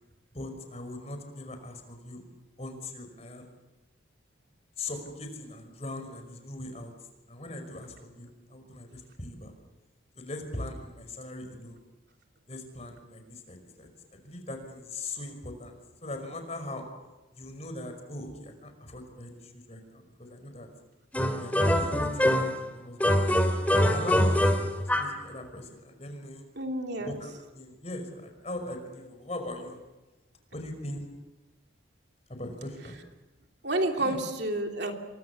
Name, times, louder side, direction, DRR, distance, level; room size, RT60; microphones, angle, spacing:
voice 1, 0.3-2.2 2.6-3.5 4.8-6.9 7.3-9.6 10.2-11.8 12.5-16.9 17.3-20.7 21.4-23.4 23.9-26.5 27.0-29.8 30.5-31.1 32.3-33.0 34.0-34.2, left 1 dB, 35° left, 6 dB, 5.5 m, -40 dB
sound 1, 21.1-22.6 23.0-25.2, equal, 10° left, 2.4 m, -24 dB
voice 2, 26.6-27.2 33.6-34.9, right 1 dB, 60° right, 3 dB, 3.2 m, -29 dB
29.5 x 24.5 x 7.3 m, 1.1 s
head